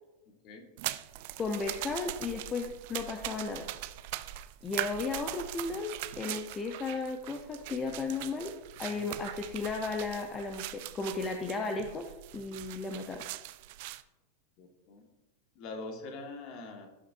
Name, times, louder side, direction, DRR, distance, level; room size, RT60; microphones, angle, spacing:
sound 1, 0.8-14.0, right 16 dB, 50° right, 0.4 m, -41 dB
voice 1, 1.4-3.7 4.6-5.9 6.2-8.5 8.8-13.3, left 4 dB, 20° left, 4 dB, 0.8 m, -35 dB
voice 2, 14.6-15.0 15.6-16.9, left 3 dB, 40° left, 3 dB, 1.7 m, -43 dB
16.5 x 6.1 x 2.7 m, 1.0 s
figure-of-eight pair, 90°, 0 cm